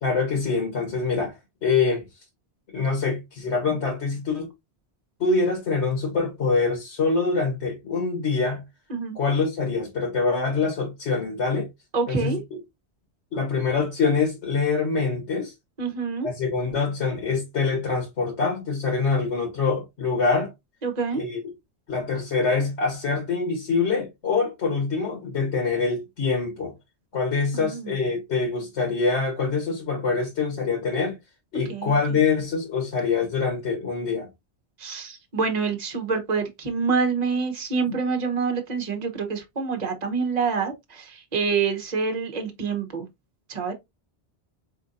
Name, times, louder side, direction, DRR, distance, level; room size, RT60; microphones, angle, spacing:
voice 1, 0.0-2.0 2.7-4.5 5.2-8.6 9.1-11.7 12.1-12.4 13.3-15.5 16.2-20.5 21.2-21.4 21.9-26.7 27.1-31.2 31.5-34.3 37.9-38.0, left 4 dB, 85° left, 1.5 m, -25 dB
voice 2, 11.9-12.4 15.8-16.3 20.8-21.2 27.5-28.0 31.7-32.2 34.8-43.1 43.5-43.7, right 5 dB, 40° right, 1.0 m, -27 dB
4.2 x 3.7 x 2.5 m
omnidirectional pair, 1.1 m